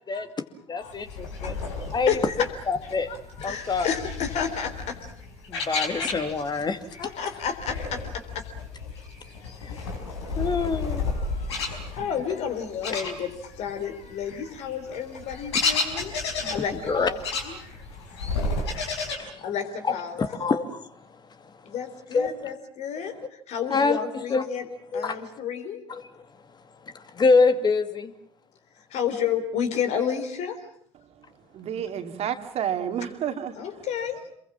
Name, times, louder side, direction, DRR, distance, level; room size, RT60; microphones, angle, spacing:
voice 1, 0.7-1.6 1.9-2.1 2.7-3.1 3.4-3.9 5.5-6.8 9.6-9.7 10.3-11.0 16.9-17.1 19.2-19.3 19.8-20.8 22.1-22.3 23.7-24.0 24.3-25.2 25.9-26.1 26.9-28.1, left 4 dB, 30° left, 2.4 m, -25 dB
sound 1, 0.9-6.6 6.9-13.7 14.0-19.2, left 3 dB, 75° left, 5.1 m, -32 dB
voice 2, 1.9-2.4 3.1-5.0 7.0-8.0 9.4-9.8 10.3-10.4 11.2-17.2 17.4-17.7 18.4-18.7 19.4-20.2 21.6-24.7 24.9-25.8 28.9-30.6 33.6-34.3, left 8 dB, 55° left, 3.8 m, -31 dB
voice 3, 31.2-33.8, right 9 dB, 50° right, 2.6 m, -31 dB
28.5 x 22.5 x 7.4 m
figure-of-eight pair, 60°, 14 cm